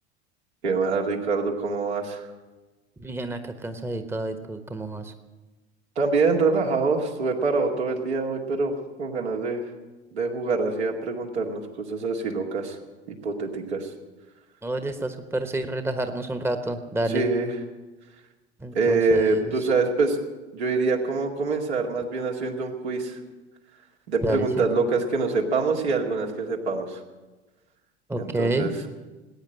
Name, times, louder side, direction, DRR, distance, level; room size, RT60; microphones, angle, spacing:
voice 1, 0.6-2.3 6.0-9.6 10.1-12.8 13.2-13.9 17.1-17.5 18.7-20.2 20.5-23.2 24.1-27.0 28.1-28.7, right 3 dB, 75° right, 0 dB, 2.2 m, -25 dB
voice 2, 3.0-5.1 14.6-17.2 18.6-19.5 24.2-24.7 28.1-28.7, right 2 dB, 5° right, 8 dB, 1.1 m, -29 dB
19.5 x 9.0 x 7.6 m, 1.2 s
figure-of-eight pair, 75°, 33 cm